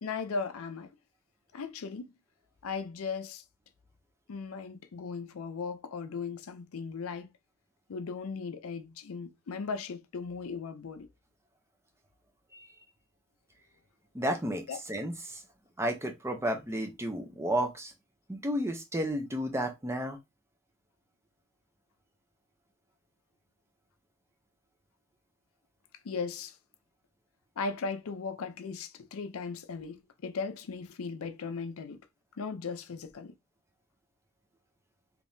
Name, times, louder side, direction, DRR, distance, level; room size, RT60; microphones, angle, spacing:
voice 1, 0.0-0.9 1.5-2.1 2.6-3.4 4.3-7.3 7.9-11.1 14.7-14.8 26.0-26.5 27.6-32.0 32.4-33.3, left 5 dB, 80° left, 0.5 m, -37 dB
voice 2, 14.1-15.4 15.8-17.9 18.3-20.2, right 1 dB, 15° right, 0.6 m, -32 dB
3.5 x 2.9 x 2.6 m
head